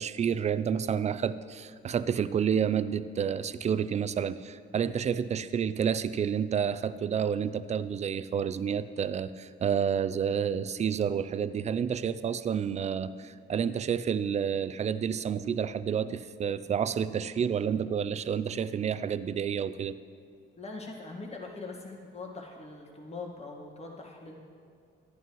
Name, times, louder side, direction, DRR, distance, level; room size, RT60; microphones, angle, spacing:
voice 1, 0.0-19.9, right 7 dB, 35° right, 14 dB, 0.4 m, -29 dB
voice 2, 20.6-24.4, left 3 dB, 30° left, 0 dB, 1.7 m, -42 dB
11.0 x 10.5 x 3.1 m, 2.3 s
cardioid pair, 90°, 20 cm